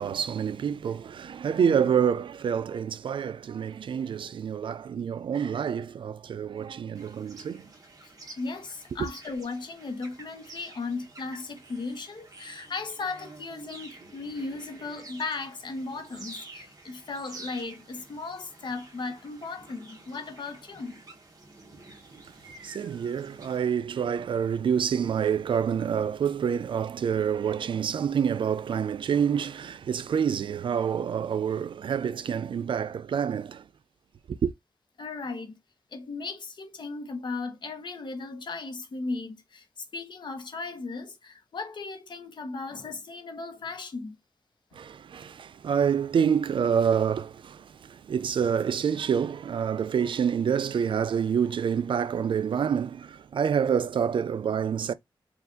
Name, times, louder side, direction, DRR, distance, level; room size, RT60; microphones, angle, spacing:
voice 1, 0.0-7.7 22.6-33.6 34.3-34.5 44.7-54.9, right 7 dB, 70° right, 0.4 m, -27 dB
sound 1, 6.9-23.6, right 2 dB, 40° right, 1.3 m, -49 dB
voice 2, 8.4-21.0 35.0-35.6 35.9-44.2, left 3 dB, 60° left, 1.0 m, -36 dB
4.5 x 2.4 x 3.8 m
wide cardioid pair, 145°, 9 cm